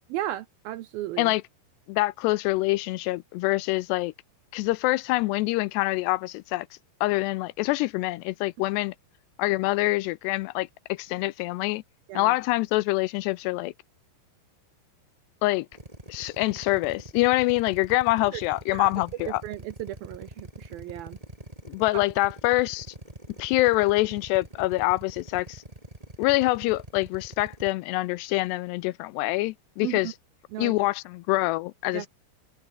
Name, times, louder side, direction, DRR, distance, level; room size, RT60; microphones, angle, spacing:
voice 1, 0.1-1.3 12.1-12.3 18.3-18.4 18.7-18.9 19.4-21.2 29.8-30.1 30.5-30.7 31.9-32.1, right 14 dB, 75° right, 2.2 m, -35 dB
voice 2, 1.9-4.1 4.5-6.7 7.0-8.9 9.4-11.8 12.2-13.7 15.4-15.7 16.1-19.4 21.7-22.9 23.4-25.6 26.2-30.1 30.6-32.1, left 20 dB, 80° left, 2.6 m, -25 dB
Drill, 15.7-27.7, right 1 dB, 10° right, 4.1 m, -44 dB
omnidirectional pair, 5.1 m